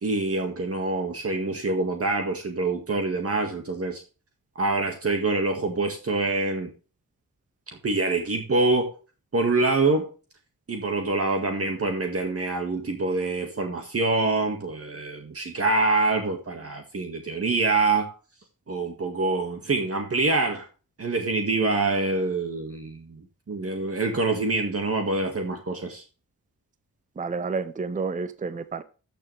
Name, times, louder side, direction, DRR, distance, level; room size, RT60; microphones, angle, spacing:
voice 1, 0.0-4.0 4.6-6.7 7.8-8.9 9.3-10.1 10.7-18.1 18.7-20.7 21.0-26.0, right 3 dB, 40° right, 4 dB, 1.9 m, -25 dB
voice 2, 27.2-28.8, right 4 dB, 20° right, 13 dB, 0.6 m, -30 dB
13.5 x 6.9 x 3.4 m, 0.35 s
wide cardioid pair, 175°, 35 cm